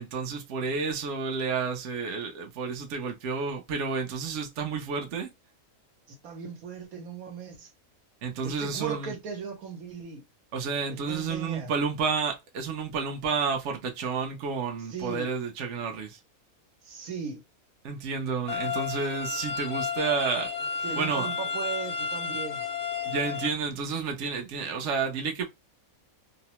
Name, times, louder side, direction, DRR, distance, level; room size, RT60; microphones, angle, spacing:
voice 1, 0.0-5.3 8.2-9.1 10.5-16.2 17.8-20.5 21.0-21.3 23.1-25.5, right 5 dB, 60° right, 0.9 m, -30 dB
voice 2, 6.1-7.7 8.4-10.2 10.9-11.7 14.9-15.3 16.8-17.4 20.8-22.6, right 6 dB, 85° right, 1.3 m, -37 dB
sound 1, 18.5-23.5, left 6 dB, 65° left, 0.8 m, -32 dB
2.8 x 2.0 x 2.9 m
omnidirectional pair, 1.5 m